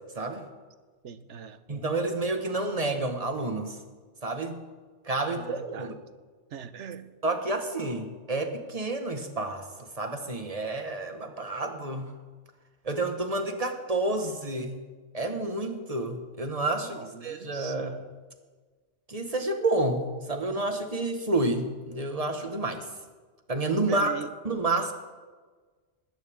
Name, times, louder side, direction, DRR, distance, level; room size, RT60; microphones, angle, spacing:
voice 1, 1.0-1.6 5.3-5.9 6.5-7.1 16.8-17.9 23.9-24.3, right 7 dB, 85° right, 1.2 m, -41 dB
voice 2, 1.7-3.8 4.2-4.6 5.1-5.9 7.2-12.1 12.9-14.8 15.1-18.0 19.1-22.8 23.5-24.1 24.5-24.9, right 2 dB, 30° right, 1.6 m, -29 dB
20.5 x 17.5 x 3.7 m
omnidirectional pair, 1.2 m